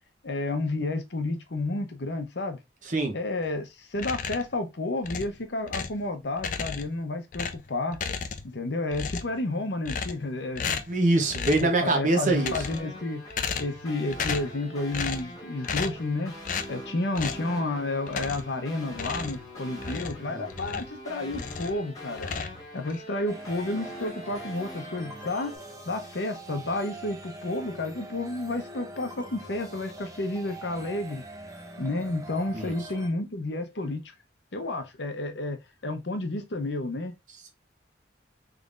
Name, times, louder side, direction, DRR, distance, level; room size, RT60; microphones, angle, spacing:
voice 1, 0.2-2.6 3.1-8.0 8.4-10.7 11.6-13.2 13.6-16.4 16.7-22.3 22.7-25.5 25.9-31.2 31.8-34.0 34.5-37.1, left 2 dB, 70° left, 0.8 m, -31 dB
voice 2, 2.8-3.2 10.6-12.5 20.3-20.4 20.7-20.8 32.5-32.7, right 2 dB, 40° right, 0.9 m, -24 dB
sound 1, 3.9-4.6 5.0-6.0 6.4-7.0 7.3-8.6 8.9-9.4 9.8-10.3 10.6-11.0 11.3-11.7 12.3-12.9 13.3-13.8 14.1-14.6 14.9-15.3 15.6-16.1 16.4-16.7 17.1-17.5 18.1-18.6 18.9-21.0 21.3-21.8 22.2-23.0, left 5 dB, 45° left, 0.4 m, -34 dB
sound 2, 12.2-25.6, equal, 20° left, 1.2 m, -43 dB
sound 3, 23.3-33.1, right 1 dB, 20° right, 0.6 m, -43 dB
3.8 x 3.3 x 2.4 m
head